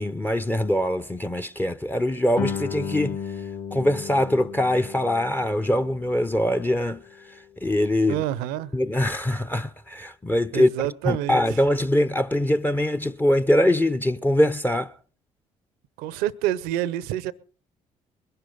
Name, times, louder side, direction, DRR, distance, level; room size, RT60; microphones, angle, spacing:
voice 1, 0.0-3.2 3.7-7.0 7.6-8.2 8.7-10.7 11.0-14.9, left 1 dB, 10° left, 0.6 m, -23 dB
Guitar, 2.4-7.7, left 6 dB, 50° left, 1.6 m, -35 dB
voice 2, 8.1-8.7 10.5-11.6 16.0-17.3, right 13 dB, 70° right, 0.7 m, -27 dB
21.5 x 11.0 x 3.9 m
hypercardioid pair, 50°, 16 cm